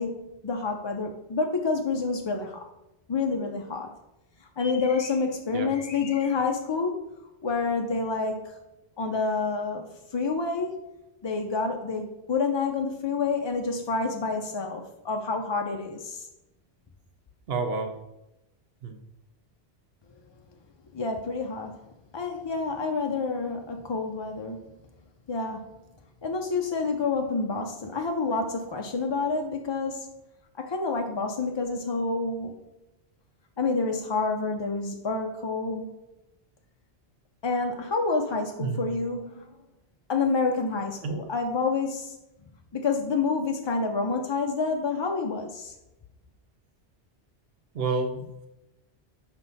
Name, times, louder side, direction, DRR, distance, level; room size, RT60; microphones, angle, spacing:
voice 1, 0.0-2.6 3.1-3.9 4.4-7.0 7.4-8.5 9.0-10.8 11.2-16.3 20.9-21.8 22.1-24.6 25.3-25.6 26.2-30.1 30.6-32.5 33.6-35.9 37.4-39.5 40.1-42.2 42.7-45.7, left 4 dB, 45° left, 3 dB, 0.3 m, -28 dB
voice 2, 17.5-17.9 18.8-19.0 38.6-38.8 41.0-41.2 47.7-48.5, right 3 dB, 70° right, 6 dB, 1.0 m, -29 dB
5.6 x 4.4 x 4.0 m, 0.92 s
omnidirectional pair, 1.1 m